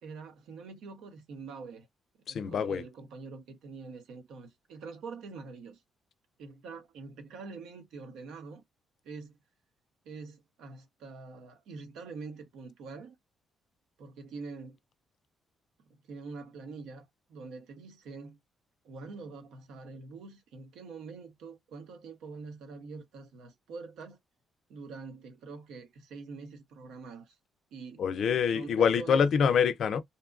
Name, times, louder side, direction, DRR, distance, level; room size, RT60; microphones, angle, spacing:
voice 1, 0.0-1.9 2.3-5.8 6.4-8.6 9.0-9.4 10.0-13.2 14.0-14.8 15.9-18.4 18.8-24.2 24.7-27.4 27.7-28.1 28.5-29.3, right 4 dB, 85° right, 0.8 m, -45 dB
voice 2, 2.3-2.8 28.0-30.0, left 7 dB, 65° left, 0.4 m, -25 dB
2.7 x 2.3 x 2.3 m
cardioid pair, 90°, 0 cm